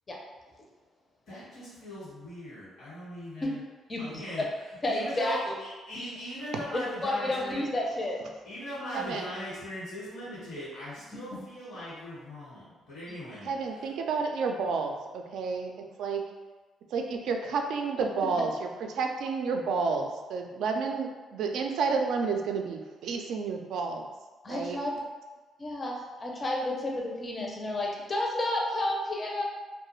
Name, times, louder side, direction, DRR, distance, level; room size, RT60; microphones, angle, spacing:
voice 1, 1.3-3.6 4.0-4.4 4.9-7.6 8.4-13.9, left 1 dB, 70° left, -9 dB, 1.1 m, -40 dB
voice 2, 3.9-4.2 4.8-5.5 7.0-8.2 13.1-13.2 24.4-24.9 25.6-29.4, left 1 dB, 30° left, -2 dB, 0.5 m, -31 dB
voice 3, 8.9-9.3 13.5-15.7 16.0-16.2 16.9-24.1 24.5-24.8, right 4 dB, 80° right, 3 dB, 0.3 m, -30 dB
2.3 x 2.1 x 3.0 m, 1.3 s
cardioid pair, 90°, 0 cm